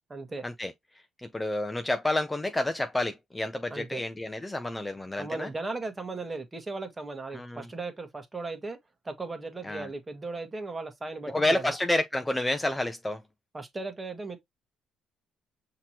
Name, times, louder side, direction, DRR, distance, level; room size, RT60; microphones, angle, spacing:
voice 1, 0.1-0.4 3.7-4.0 5.2-8.8 9.0-11.7 13.5-14.4, right 3 dB, 25° right, 1.4 m, -37 dB
voice 2, 1.2-5.5 7.3-7.7 9.6-9.9 11.3-13.2, left 1 dB, 15° left, 0.6 m, -29 dB
5.7 x 3.0 x 2.9 m
cardioid pair, 80°, 0 cm